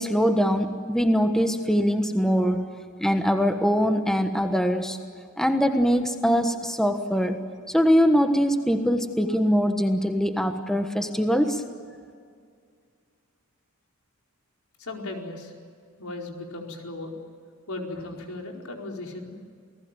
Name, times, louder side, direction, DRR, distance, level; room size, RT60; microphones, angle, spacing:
voice 1, 0.0-2.7 3.0-5.0 5.4-7.4 7.7-11.6, equal, ahead, 6 dB, 1.4 m, -22 dB
voice 2, 14.8-15.5 16.0-17.1 17.7-19.4, left 2 dB, 85° left, 1 dB, 4.6 m, -36 dB
29.0 x 19.0 x 9.1 m, 2.2 s
head